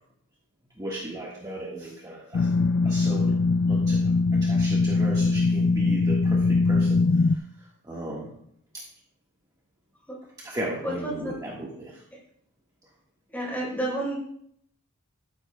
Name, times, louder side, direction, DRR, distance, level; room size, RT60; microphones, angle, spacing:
voice 1, 0.8-2.5 2.8-3.4 3.7-4.0 4.3-8.3 8.7-8.8 10.4-12.0, right 1 dB, 15° right, -5 dB, 1.5 m, -36 dB
sound 1, 2.3-7.4, left 3 dB, 55° left, 0.3 m, -22 dB
voice 2, 10.8-11.3 13.3-14.2, right 1 dB, 10° left, -4 dB, 4.1 m, -30 dB
13.5 x 9.9 x 2.3 m, 0.69 s
head